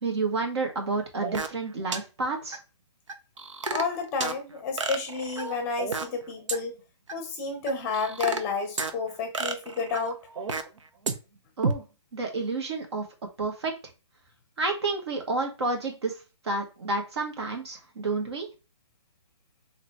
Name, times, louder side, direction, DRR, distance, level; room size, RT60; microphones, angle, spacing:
voice 1, 0.0-2.6 11.6-11.8 12.1-13.0 13.4-13.7 14.6-16.1 16.4-18.5, right 3 dB, 60° right, 1.9 m, -30 dB
sound 1, 1.2-1.6 1.9-2.0 2.5-2.6 3.1-4.4 4.8-6.2 6.5-6.6 7.1-7.2 7.7-8.9 9.3-10.8 11.1-11.2 11.6-11.7, right 4 dB, 80° right, 0.9 m, -30 dB
voice 2, 3.7-6.7 7.1-10.2, left 4 dB, 15° left, 0.7 m, -31 dB
3.8 x 3.0 x 4.6 m
hypercardioid pair, 160°, 16 cm